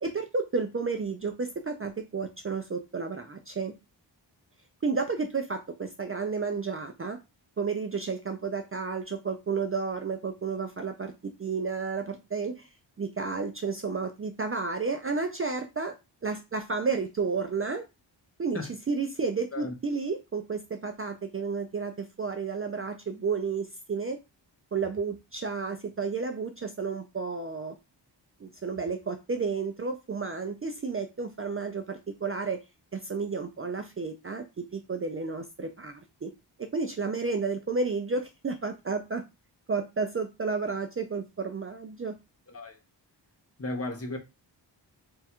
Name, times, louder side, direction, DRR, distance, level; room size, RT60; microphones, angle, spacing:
voice 1, 0.0-3.7 4.8-7.2 7.6-12.7 13.0-15.9 16.2-17.8 18.4-18.6 18.9-24.2 24.7-27.7 28.4-32.6 32.9-36.3 36.6-39.2 39.7-42.1, right 4 dB, 30° right, 0.4 m, -31 dB
voice 2, 43.6-44.2, left 2 dB, 35° left, 0.7 m, -34 dB
3.6 x 2.3 x 4.3 m
wide cardioid pair, 165°, 44 cm